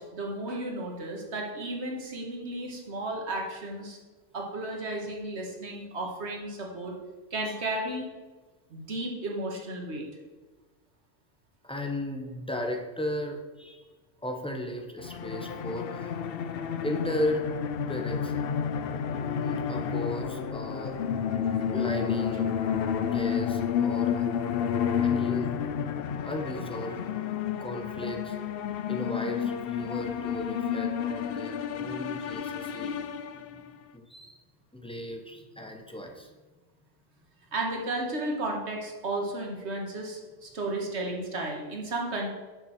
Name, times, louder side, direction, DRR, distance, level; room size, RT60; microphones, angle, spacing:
voice 1, 0.0-4.0 4.3-6.9 7.3-8.1 8.7-10.1 30.0-30.3 37.5-42.3, right 2 dB, 60° right, 0 dB, 1.7 m, -33 dB
voice 2, 11.6-13.8 14.2-16.2 16.8-17.4 17.9-18.5 19.1-20.9 21.7-22.5 23.0-24.2 25.0-25.6 26.2-27.0 27.6-28.4 28.9-33.1 33.6-33.7 33.9-34.4 34.7-36.3, left 1 dB, 5° left, 2 dB, 0.8 m, -35 dB
sound 1, 15.0-33.8, left 8 dB, 60° left, 0.7 m, -30 dB
7.2 x 5.6 x 5.8 m, 1.3 s
omnidirectional pair, 1.3 m